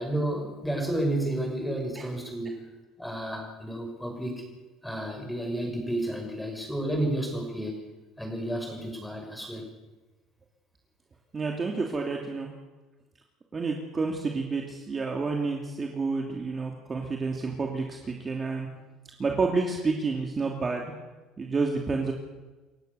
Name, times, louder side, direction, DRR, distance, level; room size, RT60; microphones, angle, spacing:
voice 1, 0.0-2.6 3.0-4.4 4.8-7.8 8.2-9.7, right 1 dB, 5° left, 2 dB, 6.4 m, -31 dB
voice 2, 11.3-12.5 13.5-18.7 19.2-21.0 21.4-22.1, right 4 dB, 25° right, 1 dB, 2.8 m, -29 dB
28.0 x 16.0 x 7.0 m, 1.2 s
cardioid pair, 130°, 0 cm